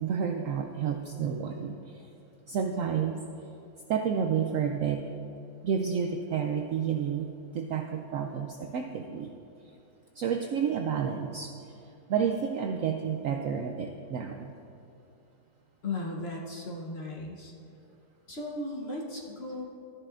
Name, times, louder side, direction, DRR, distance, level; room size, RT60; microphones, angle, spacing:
voice 1, 0.0-2.1 2.5-3.3 3.9-5.0 5.6-9.3 10.2-11.8 12.1-14.5, right 7 dB, 90° right, 4 dB, 0.7 m, -30 dB
voice 2, 15.8-17.5 18.3-19.6, left 2 dB, 45° left, -2 dB, 1.0 m, -36 dB
13.5 x 10.5 x 2.5 m, 2.7 s
omnidirectional pair, 1.9 m